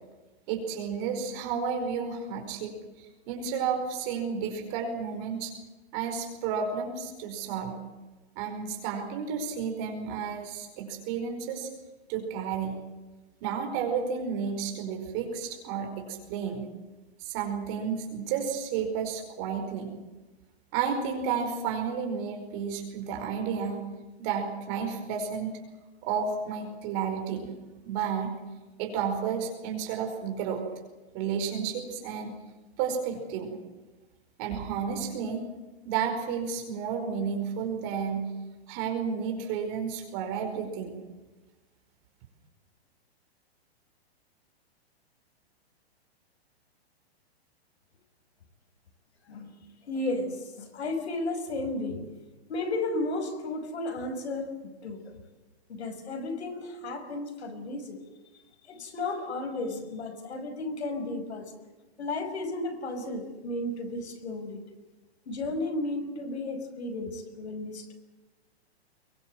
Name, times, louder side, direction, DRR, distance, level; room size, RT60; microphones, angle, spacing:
voice 1, 0.5-5.5 5.9-7.8 8.3-11.7 12.1-12.8 13.4-16.7 17.2-19.9 20.7-23.8 24.2-25.5 26.0-27.6 27.8-28.3 28.8-30.6 31.1-32.3 32.8-33.6 34.4-35.4 35.8-38.3 38.7-40.9, right 6 dB, 25° right, 3 dB, 4.9 m, -32 dB
voice 2, 49.3-52.1 52.5-55.2 55.7-58.0 58.7-61.5 62.0-64.6 65.3-67.9, left 2 dB, 90° left, 7 dB, 6.0 m, -34 dB
24.0 x 23.0 x 7.8 m, 1.2 s
hypercardioid pair, 175°, 32 cm